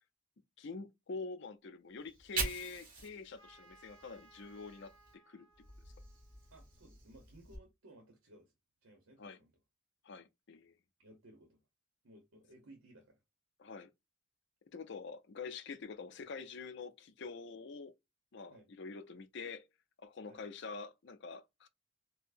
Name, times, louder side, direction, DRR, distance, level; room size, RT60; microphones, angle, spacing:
voice 1, 0.6-5.5 9.2-9.4 10.0-10.7 13.6-13.9 14.7-17.9 18.3-19.7 20.0-21.7, left 4 dB, 55° left, 0.5 m, -46 dB
Fire, 2.0-5.1 5.5-7.6, right 3 dB, 40° right, 1.3 m, -44 dB
Trumpet, 3.4-7.1, right 3 dB, 55° right, 1.4 m, -64 dB
voice 2, 6.5-8.5 8.8-9.5 11.0-11.6 12.0-13.2 18.5-18.7 20.3-20.4, right 1 dB, 75° right, 0.9 m, -59 dB
4.4 x 2.1 x 2.5 m
head